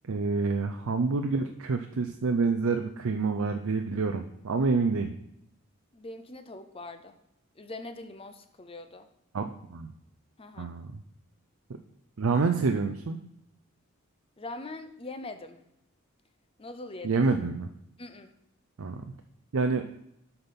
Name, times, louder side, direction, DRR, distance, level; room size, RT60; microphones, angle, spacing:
voice 1, 0.0-5.2 9.3-9.9 10.6-11.0 12.2-13.2 17.0-17.7 18.8-19.0 19.5-19.9, right 4 dB, 80° right, 6 dB, 0.5 m, -27 dB
voice 2, 5.9-7.2 7.6-9.1 10.4-10.7 14.4-15.6 16.6-17.2 18.0-18.3, left 2 dB, 25° left, 9 dB, 0.6 m, -42 dB
7.9 x 5.8 x 5.3 m, 0.79 s
head